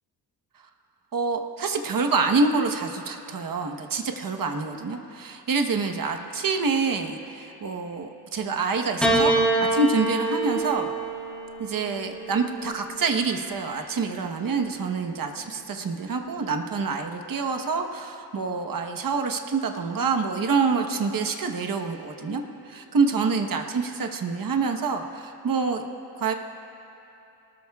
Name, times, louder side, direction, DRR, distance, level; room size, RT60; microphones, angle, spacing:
voice 1, 1.1-9.4 9.7-10.9 11.6-25.8 26.2-26.3, right 4 dB, 50° right, 5 dB, 1.2 m, -26 dB
Piano, 9.0-13.5 14.5-15.3, right 2 dB, ahead, 3.3 m, -27 dB
26.0 x 19.5 x 2.4 m, 2.9 s
wide cardioid pair, 115°, 42 cm